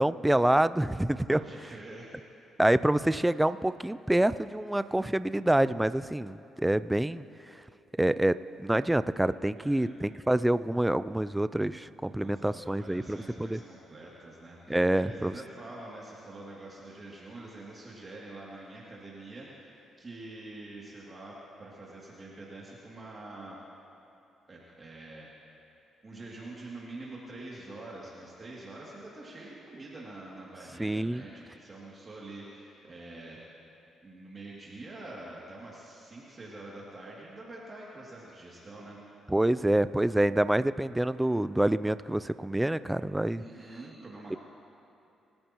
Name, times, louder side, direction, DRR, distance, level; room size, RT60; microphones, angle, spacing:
voice 1, 0.0-1.4 2.6-7.2 8.0-13.6 14.7-15.3 30.8-31.2 39.3-43.4 44.3-44.4, right 1 dB, 10° right, 14 dB, 0.3 m, -26 dB
voice 2, 1.3-2.2 9.6-9.9 12.1-23.6 24.5-25.6 26.0-33.6 34.0-39.0 43.4-44.4, right 2 dB, 30° right, -5 dB, 2.6 m, -46 dB
26.5 x 14.0 x 3.0 m, 2.9 s
cardioid pair, 90°, 0 cm